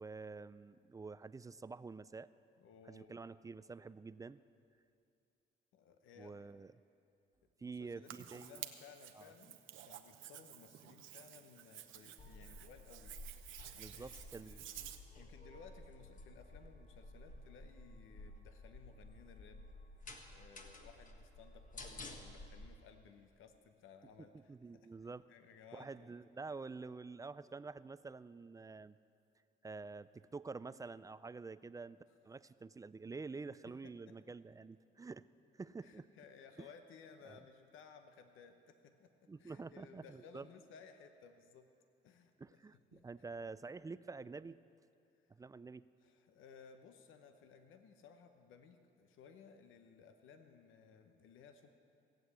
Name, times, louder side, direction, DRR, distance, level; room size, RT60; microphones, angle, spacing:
voice 1, 0.0-2.3 2.9-4.4 6.2-6.7 7.6-8.6 9.1-9.2 13.8-14.6 24.5-25.3 25.7-29.0 29.6-32.0 32.2-35.3 35.5-36.0 36.6-36.7 37.2-37.4 39.3-40.5 42.4-44.6 45.3-45.9, right 4 dB, 15° right, 16 dB, 0.3 m, -48 dB
voice 2, 2.6-3.2 5.7-6.4 7.6-13.1 13.7-14.7 15.2-19.7 20.3-26.1 33.6-34.3 35.8-39.1 39.4-41.7 42.0-42.6 42.9-43.0 46.0-51.7, left 6 dB, 85° left, 7 dB, 0.9 m, -59 dB
Hands, 8.1-15.0, right 11 dB, 80° right, 0.8 m, -52 dB
sound 1, 12.2-22.7, left 2 dB, 40° left, 1.6 m, -53 dB
17.0 x 7.8 x 8.2 m, 2.5 s
cardioid pair, 90°, 20 cm